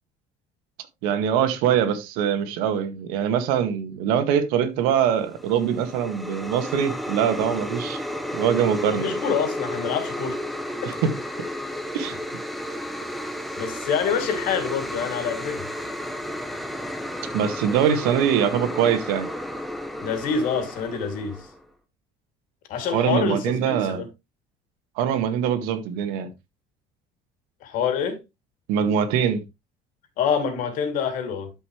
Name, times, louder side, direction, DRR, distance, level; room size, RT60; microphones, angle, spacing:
voice 1, 1.0-8.0 8.3-9.1 10.8-11.1 11.9-12.2 17.3-19.3 22.9-24.0 25.0-26.3 28.7-29.4, right 8 dB, 85° right, 2.0 m, -23 dB
sound 1, 5.2-21.6, left 1 dB, ahead, 0.9 m, -32 dB
voice 2, 8.9-10.4 10.8-10.9 13.6-15.6 20.0-21.5 22.7-24.1 27.6-28.2 30.2-31.5, left 6 dB, 60° left, 3.0 m, -26 dB
12.5 x 5.6 x 3.3 m
cardioid pair, 145°, 15 cm